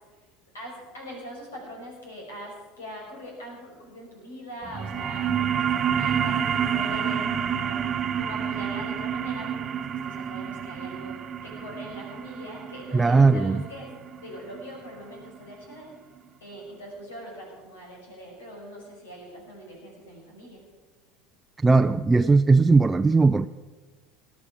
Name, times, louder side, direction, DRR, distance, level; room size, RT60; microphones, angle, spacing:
voice 1, 0.5-11.2 11.4-13.9 14.2-15.9 16.4-20.6, equal, 90° left, 5.5 m, -42 dB
sound 1, 4.6-15.7, right 8 dB, 40° right, 1.0 m, -29 dB
voice 2, 12.9-13.6 21.6-23.5, right 3 dB, 15° right, 0.4 m, -18 dB
18.5 x 11.5 x 4.9 m
hypercardioid pair, 80°, 0 cm